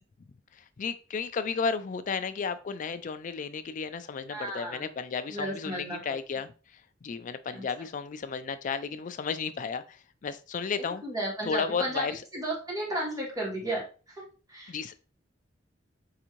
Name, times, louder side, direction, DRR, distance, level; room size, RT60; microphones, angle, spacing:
voice 1, 0.3-11.0 11.5-12.2 14.7-15.0, left 5 dB, 45° left, 11 dB, 0.4 m, -33 dB
voice 2, 4.3-4.9 5.3-6.0 7.5-7.6 10.8-14.7, right 1 dB, 20° right, -1 dB, 1.3 m, -34 dB
4.7 x 2.6 x 3.0 m, 0.35 s
head